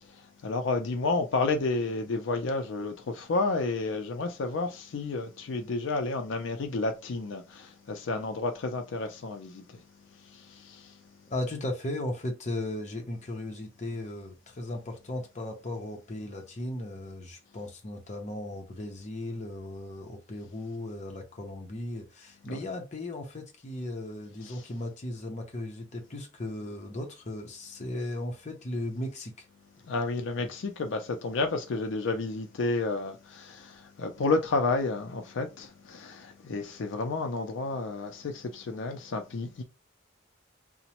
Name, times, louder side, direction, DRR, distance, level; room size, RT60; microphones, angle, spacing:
voice 1, 0.1-9.8 10.2-11.0 22.5-22.6 24.4-24.6 29.8-39.6, left 3 dB, 75° left, 0.4 m, -31 dB
voice 2, 11.3-29.5, left 1 dB, 35° left, 0.7 m, -36 dB
2.9 x 2.1 x 2.9 m
head